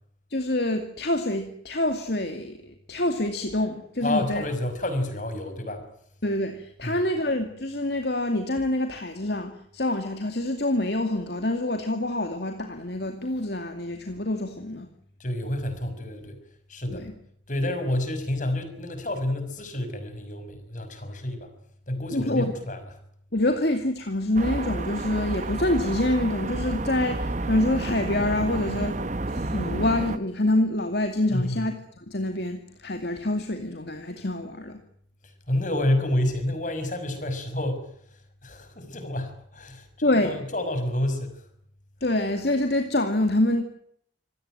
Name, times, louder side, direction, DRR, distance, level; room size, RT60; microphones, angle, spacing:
voice 1, 0.3-4.4 6.2-14.9 16.9-17.1 22.1-22.6 23.3-29.0 29.3-31.7 32.1-34.8 40.0-40.4 42.0-43.6, left 1 dB, 60° left, 6 dB, 2.3 m, -26 dB
voice 2, 4.0-5.8 6.8-7.0 15.2-16.4 16.7-17.1 17.5-21.5 21.9-22.8 31.3-31.6 35.2-37.9 38.4-41.4, left 1 dB, 45° left, 8 dB, 6.0 m, -29 dB
sound 1, 24.4-30.2, right 2 dB, 40° right, 0.9 m, -30 dB
26.5 x 17.5 x 9.1 m, 0.67 s
head